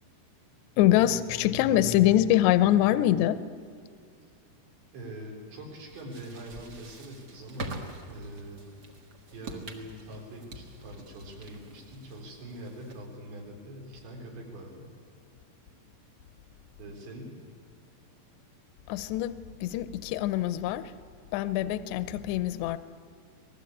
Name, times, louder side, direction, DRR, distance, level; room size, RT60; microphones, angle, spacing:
voice 1, 0.8-3.4 18.9-20.9 21.3-22.8, left 13 dB, 80° left, 13 dB, 2.8 m, -24 dB
voice 2, 4.9-8.7 9.3-14.9 16.8-17.4, right 1 dB, 85° right, 0 dB, 6.6 m, -43 dB
sound 1, 5.9-13.2, right 2 dB, 55° right, 1.1 m, -45 dB
26.0 x 19.5 x 8.5 m, 2.1 s
omnidirectional pair, 5.0 m